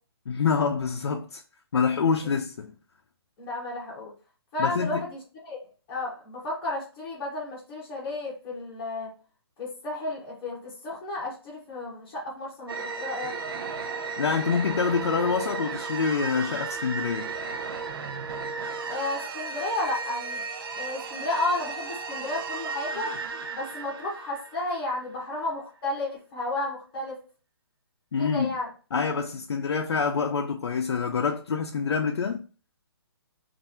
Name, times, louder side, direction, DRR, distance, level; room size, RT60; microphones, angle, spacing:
voice 1, 0.3-1.4 1.7-2.7 4.6-5.0 14.2-17.4 28.1-28.5 28.9-32.4, left 5 dB, 80° left, 0.6 m, -26 dB
voice 2, 3.4-4.1 4.5-5.6 5.9-9.1 9.6-13.3 18.9-20.4 20.8-23.1 23.5-27.1 28.2-28.7, left 2 dB, 20° left, 1.3 m, -32 dB
sound 1, 12.7-25.2, right 4 dB, 60° right, 0.6 m, -35 dB
3.2 x 2.6 x 4.2 m
hypercardioid pair, 165°, 13 cm